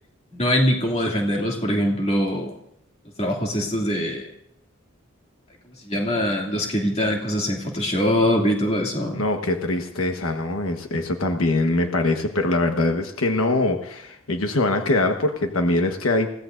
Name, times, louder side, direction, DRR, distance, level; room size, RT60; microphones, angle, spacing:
voice 1, 0.3-2.5 3.2-4.3 5.8-9.2, equal, 30° left, -1 dB, 2.5 m, -23 dB
voice 2, 9.1-16.3, left 2 dB, 80° left, 4 dB, 1.3 m, -23 dB
29.0 x 16.5 x 2.6 m, 0.73 s
head